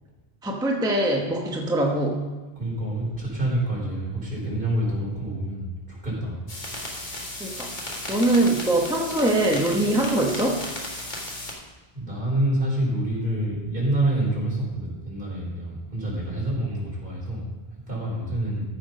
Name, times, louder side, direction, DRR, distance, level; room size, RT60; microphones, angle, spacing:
voice 1, 0.4-2.3 7.4-7.7 8.1-10.6, right 1 dB, 5° right, 0 dB, 1.0 m, -23 dB
voice 2, 2.6-6.4 11.9-17.5 17.9-18.6, right 1 dB, 55° right, -5 dB, 4.4 m, -27 dB
sound 1, 6.5-11.5, left 1 dB, 45° left, 1.9 m, -34 dB
14.0 x 6.2 x 5.2 m, 1.3 s
omnidirectional pair, 1.0 m